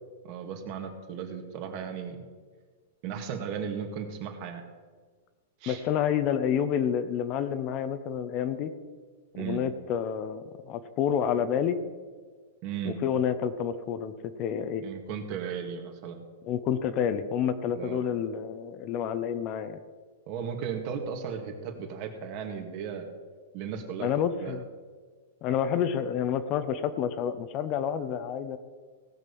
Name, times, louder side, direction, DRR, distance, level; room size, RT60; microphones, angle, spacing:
voice 1, 0.2-2.3 3.0-4.6 5.6-5.8 9.4-9.6 12.6-13.0 14.8-16.2 17.7-18.0 20.3-23.1 23.5-24.6, right 7 dB, 45° right, 4 dB, 2.0 m, -36 dB
voice 2, 5.7-8.7 9.4-11.8 12.8-14.8 16.4-19.8 24.0-24.6 25.4-28.6, left 8 dB, 40° left, 11 dB, 0.8 m, -29 dB
18.0 x 6.6 x 5.5 m, 1.5 s
hypercardioid pair, 140°, 0 cm